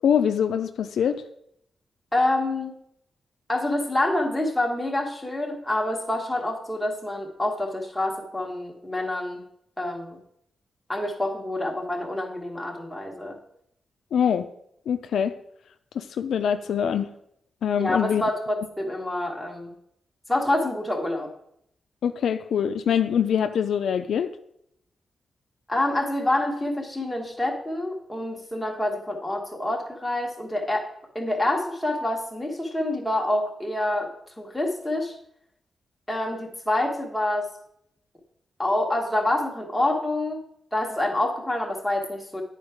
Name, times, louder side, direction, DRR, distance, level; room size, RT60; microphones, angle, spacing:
voice 1, 0.0-1.2 14.1-14.5 14.9-15.4 15.9-17.1 17.6-18.2 22.0-24.3, left 8 dB, 85° left, 9 dB, 0.4 m, -24 dB
voice 2, 2.1-2.7 3.5-9.4 9.8-10.2 10.9-13.4 17.8-19.7 20.3-21.3 25.7-30.9 31.1-35.2 36.1-37.5 38.6-40.4 40.7-42.4, left 1 dB, 5° left, 0 dB, 1.3 m, -27 dB
9.7 x 4.6 x 4.9 m, 0.73 s
wide cardioid pair, 150°, 0 cm